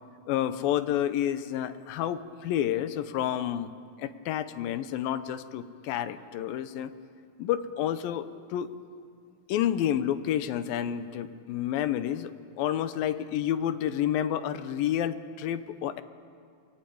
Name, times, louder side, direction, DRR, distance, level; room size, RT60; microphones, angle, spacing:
voice 1, 0.3-3.7 4.0-6.9 7.4-8.7 9.5-12.3 12.6-16.0, left 10 dB, 80° left, 12 dB, 2.6 m, -29 dB
28.0 x 20.5 x 8.7 m, 2.3 s
omnidirectional pair, 4.2 m